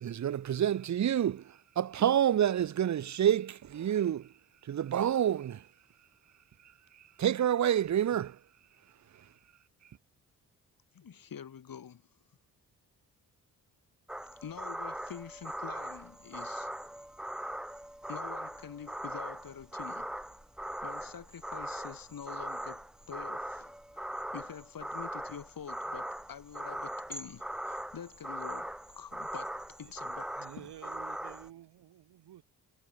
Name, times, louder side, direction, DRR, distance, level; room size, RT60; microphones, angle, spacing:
voice 1, 0.0-1.4 1.8-4.3 4.7-5.6 7.2-8.4, right 10 dB, 45° right, 0.8 m, -28 dB
voice 2, 10.9-12.0 14.4-16.7 18.1-20.1 20.8-30.2 30.6-30.7, left 8 dB, 55° left, 4.0 m, -46 dB
sound 1, 14.1-31.5, right 1 dB, ahead, 0.4 m, -40 dB
voice 3, 30.4-32.4, right 12 dB, 70° right, 6.0 m, -51 dB
hypercardioid pair, 45°, 41 cm